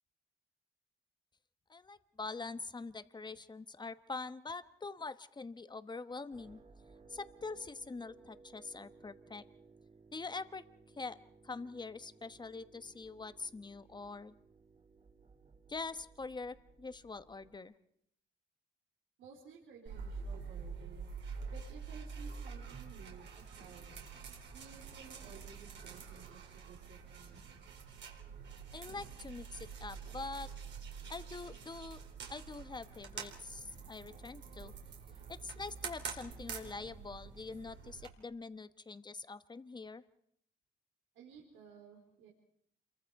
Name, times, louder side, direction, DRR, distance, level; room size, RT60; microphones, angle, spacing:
voice 1, 1.7-6.6 7.1-9.4 10.1-10.6 11.0-11.2 11.4-14.3 15.7-17.7 28.7-30.5 31.1-32.0 32.3-34.7 35.3-40.0, left 4 dB, 20° left, 12 dB, 1.1 m, -44 dB
sound 1, 6.3-17.6, right 4 dB, 35° right, 2.7 m, -61 dB
voice 2, 19.2-21.1 21.5-24.0 24.5-27.4 27.7-27.8 41.1-42.3, right 6 dB, 90° right, -2 dB, 4.2 m, -56 dB
sound 2, 19.9-38.1, right 5 dB, 65° right, 4.2 m, -47 dB
28.0 x 23.0 x 4.8 m, 0.70 s
cardioid pair, 90°, 20 cm